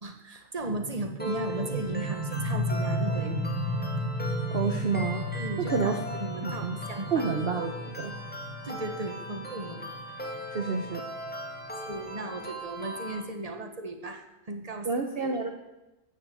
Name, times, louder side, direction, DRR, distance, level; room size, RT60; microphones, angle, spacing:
voice 1, 0.0-3.4 5.3-7.3 8.6-9.8 10.2-10.4 11.9-14.9 15.2-15.3, right 2 dB, 30° right, 5 dB, 1.6 m, -36 dB
sound 1, 0.6-12.1, equal, 85° left, 3.5 m, -34 dB
sound 2, 1.2-13.2, equal, 5° left, 2.4 m, -39 dB
voice 2, 4.5-5.3 5.7-6.0 6.4-6.8 7.1-8.1 10.5-11.0 14.8-15.5, right 5 dB, 45° right, 4 dB, 1.3 m, -29 dB
14.5 x 10.0 x 8.6 m, 1.0 s
omnidirectional pair, 1.4 m